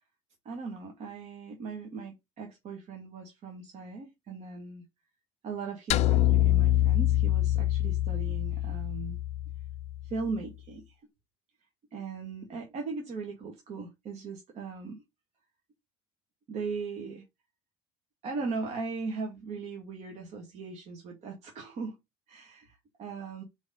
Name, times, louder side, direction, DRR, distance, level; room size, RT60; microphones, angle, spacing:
voice 1, 0.5-4.8 5.4-9.2 10.0-11.0 11.9-15.0 16.5-17.2 18.2-22.0 22.3-23.4, right 4 dB, 50° right, 1.9 m, -38 dB
sound 1, 5.9-10.3, left 14 dB, 50° left, 0.4 m, -26 dB
4.7 x 4.2 x 5.5 m
supercardioid pair, 90°, 14 cm